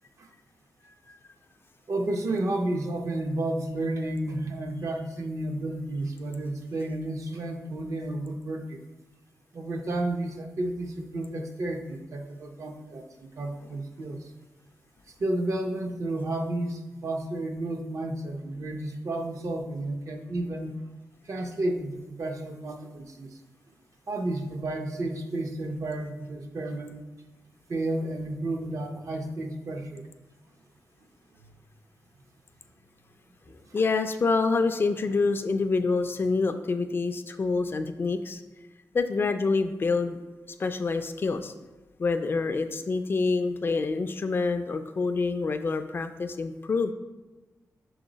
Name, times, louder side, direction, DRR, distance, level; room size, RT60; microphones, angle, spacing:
voice 1, 1.9-8.8 9.5-14.2 15.2-20.7 21.2-23.3 24.1-26.9 27.7-30.0, right 1 dB, 55° right, 4 dB, 0.6 m, -31 dB
voice 2, 33.7-38.4 38.9-40.2 40.6-41.5 42.0-46.9, left 4 dB, 35° left, 8 dB, 0.3 m, -26 dB
6.3 x 3.9 x 3.9 m, 1.2 s
wide cardioid pair, 165°, 6 cm